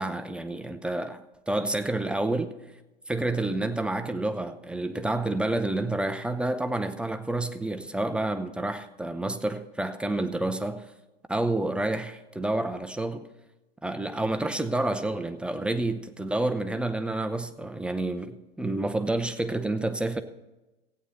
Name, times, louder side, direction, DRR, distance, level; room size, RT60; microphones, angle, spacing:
voice 1, 0.0-2.6 3.1-10.9 11.3-13.3 13.8-20.2, right 2 dB, 5° right, 0.6 m, -29 dB
15.5 x 8.9 x 4.0 m
figure-of-eight pair, 95°, 29 cm